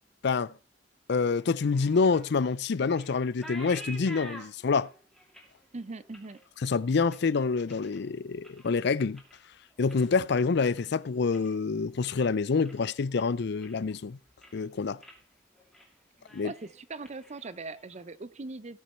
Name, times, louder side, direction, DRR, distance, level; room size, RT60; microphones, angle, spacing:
voice 1, 1.1-4.9 6.6-9.2 9.8-14.2 14.5-15.0 16.3-16.5, left 4 dB, 65° left, 0.5 m, -27 dB
sound 1, 1.3-8.0 8.3-8.8 9.1-11.6 11.9-12.3 12.6-12.8 13.2-14.0 14.3-14.7 15.0-15.2 15.5-15.9 16.2-18.0, equal, ahead, 2.4 m, -49 dB
voice 2, 5.7-6.4 16.4-18.8, right 3 dB, 40° right, 0.6 m, -40 dB
18.0 x 6.3 x 4.3 m
head